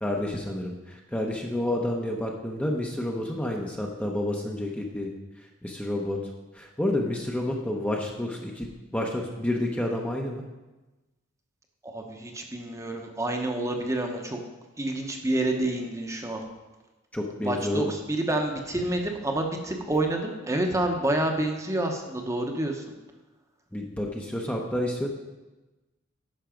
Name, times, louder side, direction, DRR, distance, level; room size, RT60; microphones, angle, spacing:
voice 1, 0.0-5.1 5.6-6.2 6.5-10.4 17.1-17.9 23.7-25.1, left 1 dB, 5° left, 0 dB, 0.8 m, -29 dB
voice 2, 11.8-14.4 14.8-16.4 17.4-22.9, right 1 dB, 15° right, 3 dB, 1.0 m, -28 dB
10.5 x 6.3 x 5.1 m, 1.1 s
head